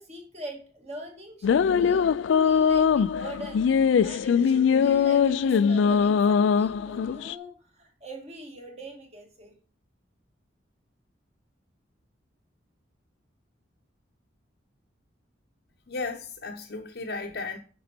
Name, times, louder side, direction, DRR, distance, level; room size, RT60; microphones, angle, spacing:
voice 1, 0.0-3.6 4.0-9.5, right 1 dB, 35° right, 1.9 m, -43 dB
sound 1, 1.4-7.3, left 6 dB, 80° left, 0.3 m, -22 dB
voice 2, 15.9-17.6, left 3 dB, 60° left, 0.8 m, -34 dB
9.4 x 5.2 x 4.3 m
head